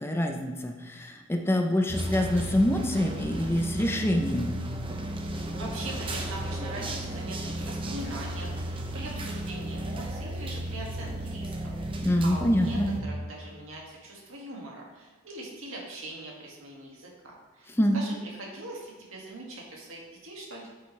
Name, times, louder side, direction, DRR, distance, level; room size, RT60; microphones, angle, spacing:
voice 1, 0.0-4.6 12.0-12.9 17.8-18.0, left 1 dB, 10° left, 4 dB, 0.5 m, -26 dB
sound 1, 1.9-13.0, right 1 dB, 25° right, 0.8 m, -34 dB
voice 2, 5.5-20.7, right 1 dB, 85° right, -2 dB, 2.0 m, -42 dB
8.8 x 5.8 x 3.3 m, 1.4 s
head